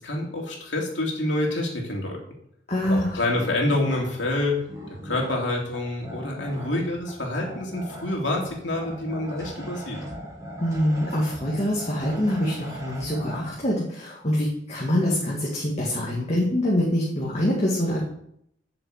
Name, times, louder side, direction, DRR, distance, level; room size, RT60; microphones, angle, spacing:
voice 1, 0.0-2.2 2.9-4.5 4.9-10.0, left 1 dB, 65° left, 0 dB, 3.0 m, -27 dB
voice 2, 2.7-3.2 10.6-18.0, left 1 dB, 35° left, -4 dB, 2.0 m, -25 dB
sound 1, 2.8-13.5, equal, 15° right, 3.2 m, -40 dB
7.8 x 7.0 x 8.0 m, 0.72 s
head